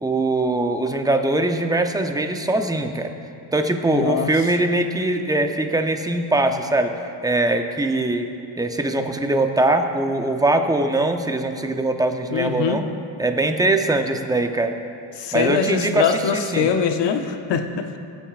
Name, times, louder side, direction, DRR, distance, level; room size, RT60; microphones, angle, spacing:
voice 1, 0.0-3.1 3.5-6.9 7.2-8.3 8.6-12.8 13.2-14.7 15.3-16.7, right 2 dB, 10° right, 6 dB, 0.6 m, -21 dB
voice 2, 3.9-4.3 12.3-12.8 15.2-17.8, left 7 dB, 65° left, 6 dB, 0.9 m, -22 dB
17.5 x 9.0 x 2.5 m, 2.6 s
cardioid pair, 100°, 46 cm